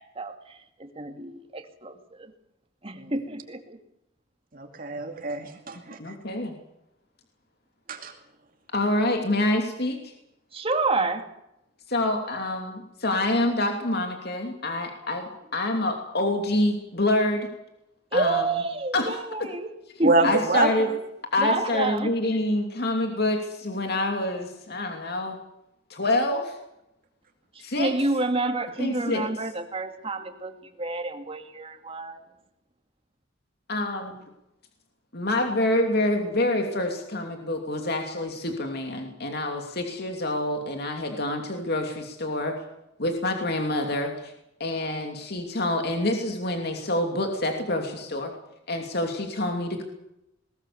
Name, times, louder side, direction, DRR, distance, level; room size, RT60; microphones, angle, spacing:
voice 1, 0.0-2.3 2.8-3.8 10.5-11.3 18.1-19.7 20.0-20.3 21.4-22.1 27.5-32.2, right 2 dB, 30° right, 6 dB, 2.4 m, -29 dB
voice 2, 4.5-6.1 7.9-8.1 20.0-20.9, right 3 dB, 50° right, 4 dB, 2.4 m, -26 dB
voice 3, 6.0-6.5 8.7-10.1 11.9-17.5 18.1-18.4 18.9-19.2 20.2-20.9 21.3-25.4 25.9-26.6 27.6-27.9 28.8-29.3 33.7-34.2 35.1-42.5 43.0-44.3 44.6-48.3 48.7-49.8, left 1 dB, 55° left, 3 dB, 2.8 m, -27 dB
20.5 x 20.5 x 7.1 m, 0.86 s
head